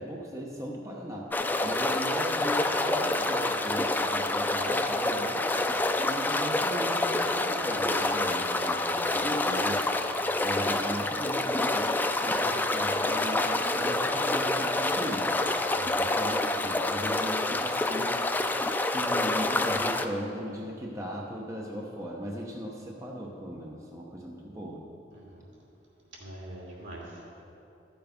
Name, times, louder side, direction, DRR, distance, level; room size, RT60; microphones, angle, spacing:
voice 1, 0.0-1.3 1.6-5.5 6.0-9.8 10.4-15.3 16.0-18.2 18.8-24.9, equal, 15° right, -2 dB, 0.9 m, -37 dB
sound 1, 1.3-20.1, left 2 dB, 10° left, 0.3 m, -27 dB
voice 2, 15.7-16.1 25.1-25.4 26.1-27.4, right 1 dB, 75° right, -4 dB, 2.7 m, -44 dB
13.5 x 7.0 x 5.2 m, 2.8 s
head